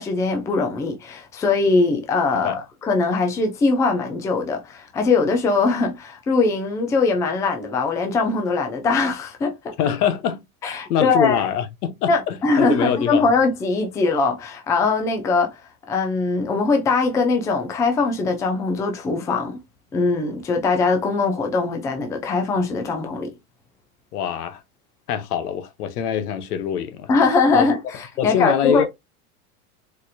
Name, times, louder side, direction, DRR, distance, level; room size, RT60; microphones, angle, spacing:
voice 1, 0.0-9.7 10.6-11.5 12.1-15.6 15.9-19.6 19.9-23.3 27.1-28.9, left 4 dB, 10° left, 0.3 m, -21 dB
voice 2, 9.8-13.2 24.1-24.6 25.1-27.1 27.5-27.7 28.2-28.9, left 9 dB, 90° left, 0.9 m, -24 dB
4.3 x 2.5 x 2.5 m
supercardioid pair, 135°, 45 cm